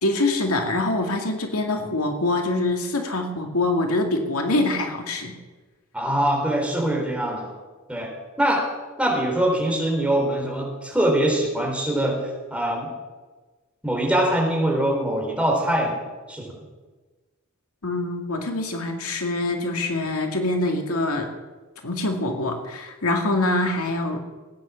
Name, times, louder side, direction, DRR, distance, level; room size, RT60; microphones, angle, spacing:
voice 1, 0.0-5.3 17.8-21.3 21.8-24.2, left 2 dB, 80° left, 3 dB, 2.3 m, -24 dB
voice 2, 5.9-7.5 7.9-8.1 8.4-8.7 9.0-12.2 12.5-12.9 13.8-16.0 16.3-16.5, right 1 dB, 5° right, -1 dB, 4.0 m, -23 dB
18.0 x 9.6 x 7.2 m, 1.3 s
head